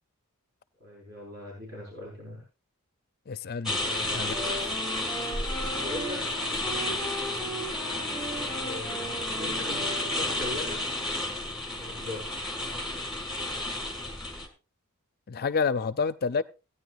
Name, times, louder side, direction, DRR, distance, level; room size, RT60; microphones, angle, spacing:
voice 1, 0.8-2.4 3.8-4.4 5.7-6.2 8.6-9.1 9.4-10.8 11.8-12.6, left 2 dB, 50° right, 5.4 m, -39 dB
voice 2, 3.3-3.8 4.1-4.4 15.3-16.4, left 5 dB, 45° left, 0.4 m, -28 dB
sound 1, 3.7-14.5, left 1 dB, ahead, 2.1 m, -32 dB
Wind instrument woodwind instrument, 4.1-10.7, equal, 20° right, 6.2 m, -38 dB
17.0 x 9.6 x 2.5 m
head